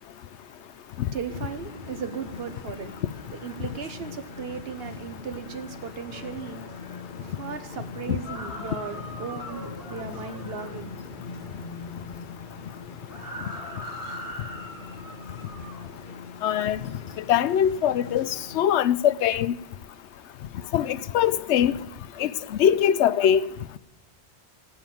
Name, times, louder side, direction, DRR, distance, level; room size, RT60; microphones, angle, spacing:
voice 1, 0.4-3.0 3.3-11.0 11.4-11.6, right 6 dB, 65° right, 1.2 m, -37 dB
sound 1, 1.3-18.6, left 4 dB, 50° left, 1.0 m, -42 dB
sound 2, 8.2-10.8 13.1-16.0, equal, 20° right, 2.5 m, -40 dB
voice 2, 16.4-16.8 17.3-19.5 20.7-21.7 22.2-22.3 22.6-23.4, left 9 dB, 85° left, 0.9 m, -22 dB
15.0 x 5.8 x 9.1 m
omnidirectional pair, 1.1 m